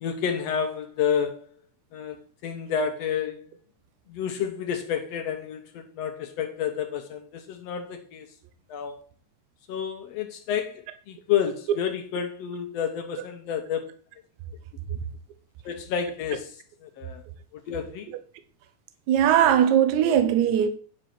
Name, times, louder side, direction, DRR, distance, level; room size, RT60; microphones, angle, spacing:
voice 1, 0.0-1.5 1.9-2.2 2.4-3.5 4.1-8.3 8.7-9.0 9.7-13.8 15.6-17.2 17.7-18.1, left 8 dB, 70° left, 1.6 m, -30 dB
voice 2, 19.1-20.7, right 9 dB, 70° right, 2.1 m, -19 dB
10.0 x 5.0 x 5.9 m
omnidirectional pair, 4.0 m